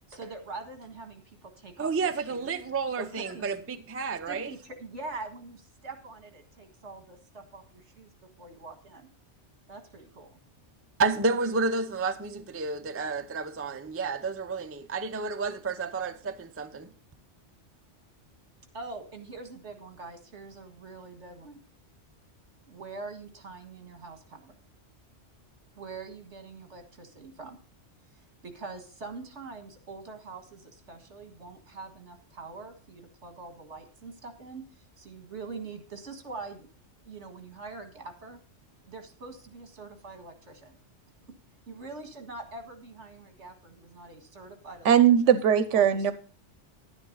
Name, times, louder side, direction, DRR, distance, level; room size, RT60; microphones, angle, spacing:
voice 1, 0.1-2.6 3.0-3.5 4.3-8.1 8.4-9.1 9.7-10.4 18.7-21.6 22.7-24.6 25.8-27.6 28.4-34.6 35.0-36.7 37.0-38.4 38.9-40.8 41.7-45.2 45.7-46.1, right 3 dB, 70° right, 2.1 m, -44 dB
voice 2, 1.8-4.5 11.0-16.9, right 4 dB, 20° right, 0.4 m, -30 dB
voice 3, 44.8-46.1, right 9 dB, 90° right, 1.1 m, -20 dB
10.5 x 9.7 x 3.9 m
omnidirectional pair, 1.2 m